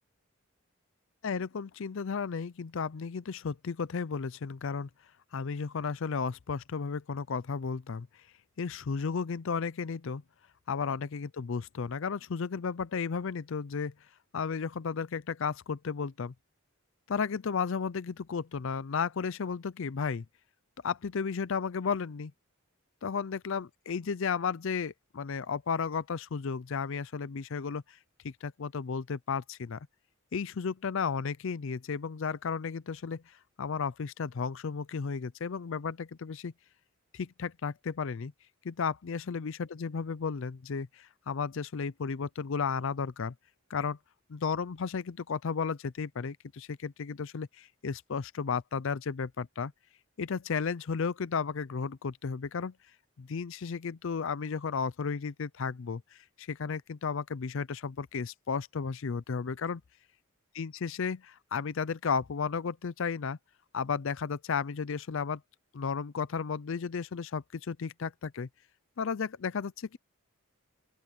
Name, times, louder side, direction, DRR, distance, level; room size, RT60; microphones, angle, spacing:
voice 1, 1.2-4.9 5.3-8.1 8.6-10.2 10.7-13.9 14.3-16.3 17.1-20.2 20.8-22.3 23.0-28.0 28.2-29.9 30.3-36.5 37.1-38.3 38.6-43.3 43.7-44.0 44.3-49.7 50.2-52.7 53.2-59.8 60.5-63.4 63.7-65.4 65.7-68.5 69.0-70.0, left 5 dB, 60° left, 0.5 m, -33 dB
open air
head